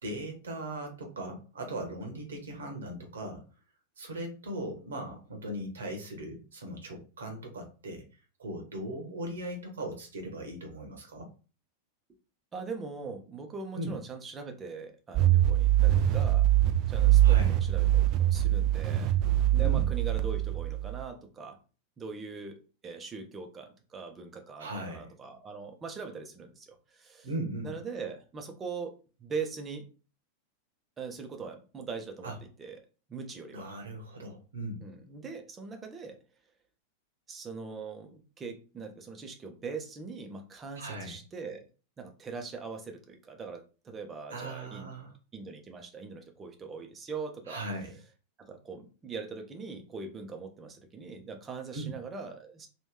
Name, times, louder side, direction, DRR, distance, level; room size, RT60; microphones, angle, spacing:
voice 1, 0.0-3.4 4.0-11.3 13.7-14.0 17.2-17.6 19.5-19.9 24.6-25.1 27.2-27.7 32.2-32.4 33.5-34.8 40.8-41.2 44.3-45.1 47.5-48.0 51.7-51.9, right 1 dB, 65° right, 4 dB, 1.1 m, -38 dB
voice 2, 12.5-16.5 16.9-19.2 19.5-21.6 22.0-27.3 27.6-29.9 31.0-32.8 33.1-33.7 34.8-36.2 37.3-41.7 42.0-44.9 45.3-47.6 48.4-52.7, right 4 dB, 20° right, 5 dB, 0.8 m, -41 dB
sound 1, 15.1-21.0, right 13 dB, 40° right, 0.4 m, -24 dB
3.0 x 2.6 x 3.6 m, 0.35 s
figure-of-eight pair, 90°, 0 cm